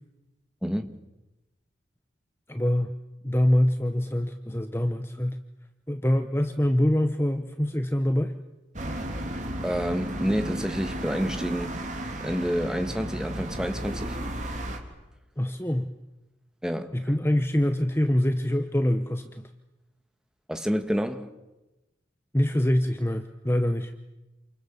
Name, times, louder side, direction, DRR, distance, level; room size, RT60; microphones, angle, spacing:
voice 1, 0.6-1.0 9.6-11.8 12.2-14.2 16.6-16.9 20.5-21.3, equal, 5° right, 1.6 m, -28 dB
voice 2, 2.5-2.9 3.2-5.4 5.9-8.3 15.4-15.9 16.9-19.5 22.3-23.9, left 1 dB, 10° left, 1.0 m, -25 dB
sound 1, 8.7-14.8, right 1 dB, 40° right, 3.5 m, -34 dB
28.5 x 28.5 x 7.3 m
head